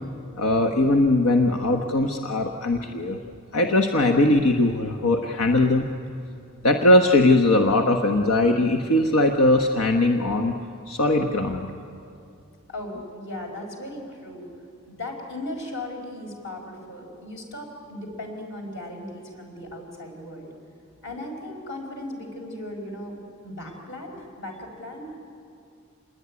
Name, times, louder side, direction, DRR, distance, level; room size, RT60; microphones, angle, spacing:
voice 1, 0.4-3.2 3.5-5.9 6.6-10.6 10.9-11.7, left 2 dB, 90° left, 4 dB, 1.2 m, -20 dB
voice 2, 12.7-14.5 14.9-20.5 21.0-23.2 23.4-25.2, left 1 dB, 60° left, 2 dB, 5.2 m, -37 dB
27.0 x 21.0 x 9.7 m, 2.5 s
head